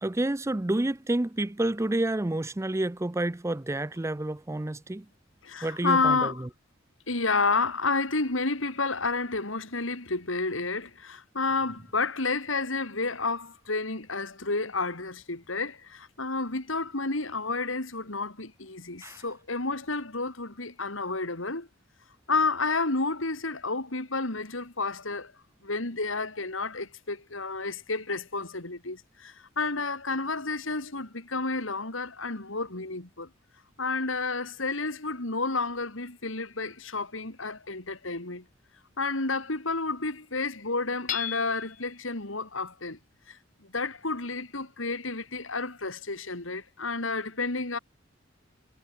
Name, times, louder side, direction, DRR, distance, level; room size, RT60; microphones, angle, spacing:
voice 1, 0.0-5.1 5.6-6.5 19.0-19.2, right 1 dB, 15° right, 0.5 m, -29 dB
voice 2, 5.4-6.4 7.1-21.7 22.3-25.3 25.6-33.3 33.8-38.4 39.0-43.0 43.3-47.8, left 3 dB, 80° left, 3.5 m, -30 dB
Hammer / Chink clink, 41.1-41.9, left 11 dB, 40° left, 0.5 m, -34 dB
head